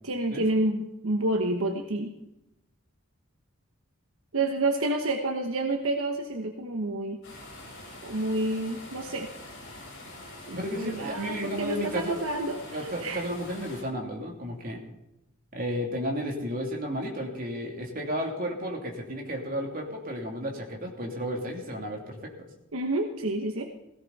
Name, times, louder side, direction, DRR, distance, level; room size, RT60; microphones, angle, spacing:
voice 1, 0.0-2.1 4.3-7.2 8.0-9.3 10.5-13.2 22.7-23.6, right 2 dB, 70° right, 4 dB, 1.2 m, -29 dB
sound 1, 7.2-13.8, left 1 dB, 55° left, 7.6 m, -45 dB
voice 2, 10.5-12.2 12.7-14.8 15.5-22.5, equal, 40° right, 0 dB, 3.1 m, -33 dB
17.0 x 17.0 x 4.2 m, 0.90 s
head